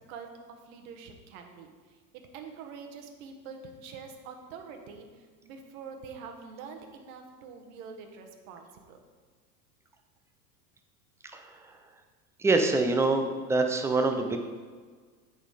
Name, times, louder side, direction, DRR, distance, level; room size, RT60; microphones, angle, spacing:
voice 1, 0.1-9.0, right 5 dB, 60° right, 4 dB, 1.2 m, -45 dB
voice 2, 11.3-11.8 12.4-14.4, right 3 dB, 5° right, 4 dB, 0.5 m, -25 dB
8.8 x 4.2 x 4.9 m, 1.5 s
hypercardioid pair, 95°, 48 cm